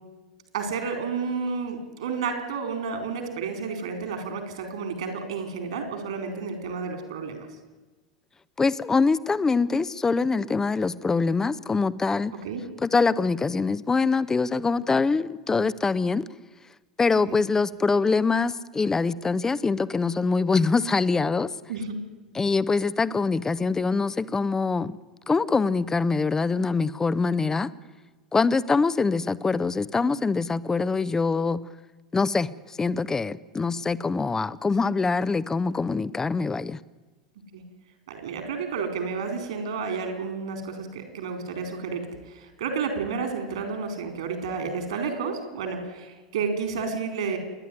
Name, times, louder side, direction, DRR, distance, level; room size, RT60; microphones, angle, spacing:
voice 1, 0.5-7.4 12.4-12.6 17.3-17.4 21.7-22.0 27.5-27.6 37.5-37.6 38.1-47.4, right 5 dB, 65° right, 4.4 m, -31 dB
voice 2, 8.6-12.3 12.8-16.2 17.0-21.5 22.3-25.0 25.3-27.7 28.3-31.6 32.1-36.8, left 4 dB, 15° left, 0.8 m, -24 dB
28.0 x 11.0 x 9.5 m
figure-of-eight pair, 80°, 3 cm